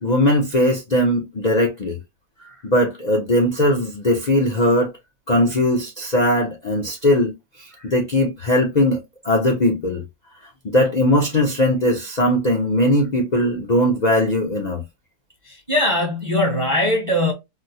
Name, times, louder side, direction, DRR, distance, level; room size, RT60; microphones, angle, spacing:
voice 1, 0.0-2.0 2.6-4.9 5.3-9.0 9.2-10.0 10.6-14.8, left 1 dB, 55° left, 0.4 m, -19 dB
voice 2, 15.4-17.3, left 1 dB, 30° right, 0.6 m, -21 dB
4.0 x 2.0 x 2.7 m
omnidirectional pair, 1.8 m